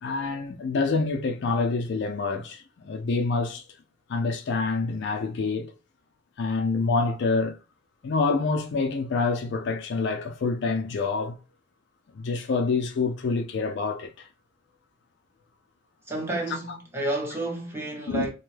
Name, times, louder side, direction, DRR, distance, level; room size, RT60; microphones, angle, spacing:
voice 1, 0.0-3.6 4.1-5.7 6.4-7.6 8.0-11.4 12.1-14.3 16.7-16.8 18.1-18.3, left 4 dB, 60° left, 0.4 m, -27 dB
voice 2, 16.1-18.3, right 2 dB, 10° right, 0.8 m, -30 dB
2.6 x 2.2 x 3.2 m
head